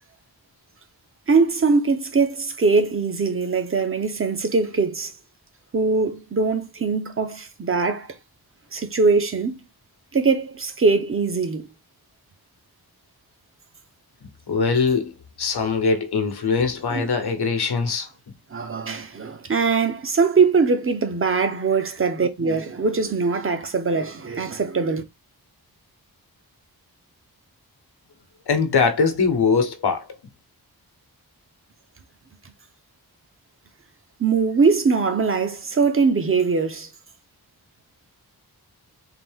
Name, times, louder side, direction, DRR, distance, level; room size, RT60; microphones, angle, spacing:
voice 1, 1.3-5.1 5.7-8.1 8.7-9.6 10.1-11.6 16.9-17.1 18.5-25.0 34.2-36.9, right 4 dB, 35° right, 0.7 m, -21 dB
voice 2, 14.2-18.1 28.5-30.1, left 5 dB, 80° left, 1.0 m, -22 dB
3.8 x 2.6 x 3.5 m
wide cardioid pair, 130°, 38 cm